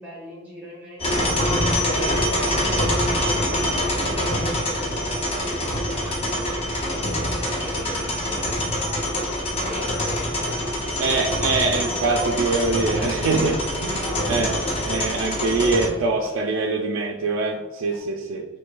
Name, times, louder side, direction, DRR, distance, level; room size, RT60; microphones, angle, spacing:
voice 1, 0.0-11.4 11.8-13.3 13.6-14.2, equal, 10° right, -4 dB, 0.8 m, -39 dB
sound 1, 1.0-15.0 15.5-15.9 16.2-18.0, left 1 dB, 90° left, 1.0 m, -41 dB
sound 2, 1.0-15.9, left 1 dB, 25° left, 0.5 m, -25 dB
voice 2, 11.0-14.6 14.9-18.5, right 3 dB, 70° right, 1 dB, 0.3 m, -24 dB
4.4 x 2.6 x 2.2 m, 1.2 s
head